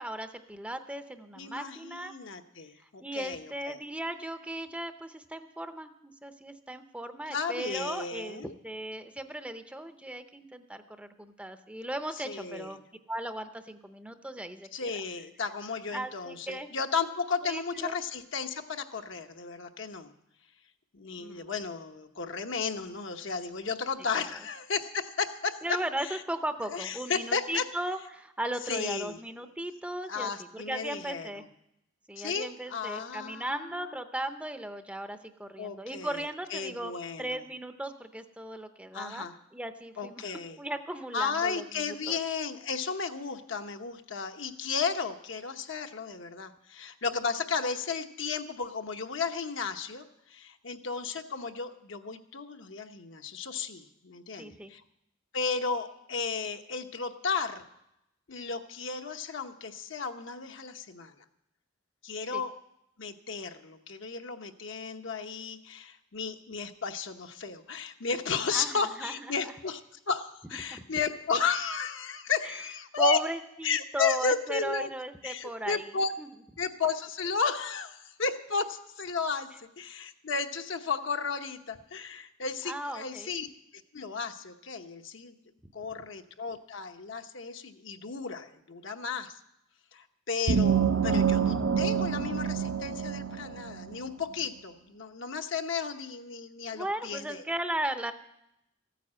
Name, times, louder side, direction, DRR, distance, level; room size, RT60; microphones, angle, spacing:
voice 1, 0.0-2.1 3.0-12.8 13.1-15.0 15.9-16.7 17.4-18.0 21.2-21.5 24.1-24.3 25.6-31.4 32.1-36.9 37.2-42.2 54.4-54.7 62.3-62.4 68.5-69.1 69.4-69.5 70.7-70.8 72.4-72.5 73.0-75.9 76.2-76.3 82.7-83.3 96.7-98.1, right 1 dB, 5° right, 8 dB, 0.6 m, -37 dB
voice 2, 1.4-3.8 7.3-8.5 12.2-12.8 14.7-20.1 20.9-26.2 26.7-27.7 28.7-29.2 30.1-31.5 32.2-34.0 35.6-36.2 36.5-37.4 38.9-39.4 40.0-40.6 41.1-54.8 55.3-57.6 58.3-61.1 62.0-62.5 63.0-69.8 70.1-73.2 73.6-74.9 75.2-76.1 76.6-83.5 83.9-85.4 85.7-89.4 89.9-97.4, left 5 dB, 65° left, 6 dB, 1.0 m, -34 dB
sound 1, 90.5-94.0, right 7 dB, 70° right, 0.7 m, -27 dB
14.5 x 9.3 x 7.5 m, 0.82 s
head